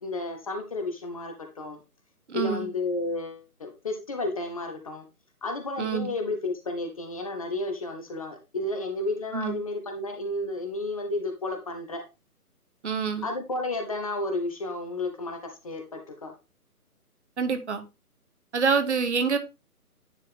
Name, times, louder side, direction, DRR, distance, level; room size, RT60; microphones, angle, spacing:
voice 1, 0.0-1.8 2.3-5.0 5.4-12.0 13.2-15.4 15.6-16.3, left 2 dB, 25° left, 0.8 m, -32 dB
voice 2, 2.3-2.7 5.8-6.1 9.3-9.6 12.8-13.3 17.4-17.8 18.5-19.4, right 5 dB, 50° right, 1.2 m, -26 dB
9.8 x 4.4 x 3.5 m
figure-of-eight pair, 145°, 45 cm